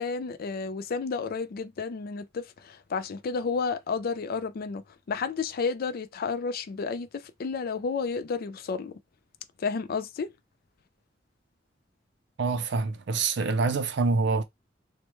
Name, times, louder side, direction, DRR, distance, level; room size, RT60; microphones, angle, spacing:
voice 1, 0.0-4.8 5.1-8.9 9.6-10.3, left 5 dB, 55° left, 0.4 m, -31 dB
voice 2, 12.4-14.4, right 4 dB, 65° right, 0.5 m, -26 dB
3.1 x 2.1 x 3.0 m
head